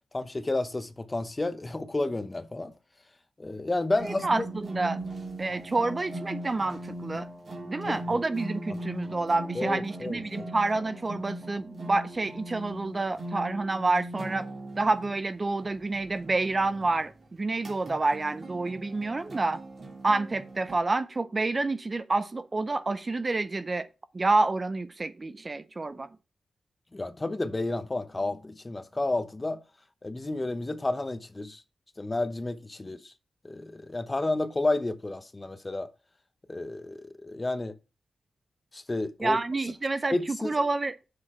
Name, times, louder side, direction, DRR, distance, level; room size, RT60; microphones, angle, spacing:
voice 1, 0.1-2.7 3.4-4.4 7.9-8.0 8.7-8.8 9.5-10.5 26.9-29.6 30.0-31.6 32.0-33.1 33.4-35.9 36.5-37.7 38.7-39.4 40.1-40.5, left 2 dB, 20° left, 0.8 m, -31 dB
sound 1, 3.9-20.8, right 1 dB, 50° right, 2.5 m, -40 dB
voice 2, 4.0-5.0 5.4-7.3 7.7-14.5 14.8-19.6 20.0-23.9 24.1-26.1 39.2-40.9, right 3 dB, 30° right, 0.5 m, -28 dB
7.4 x 6.4 x 4.3 m
wide cardioid pair, 115°, 0 cm